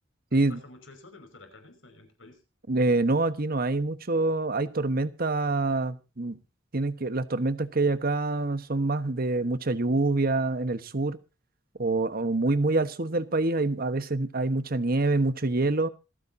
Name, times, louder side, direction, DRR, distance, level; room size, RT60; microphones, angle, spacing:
voice 1, 0.3-2.4, left 2 dB, 90° left, 5.6 m, -50 dB
voice 2, 2.7-6.4 6.7-11.2 11.8-15.9, right 2 dB, 50° right, 1.2 m, -26 dB
27.0 x 9.0 x 2.7 m
head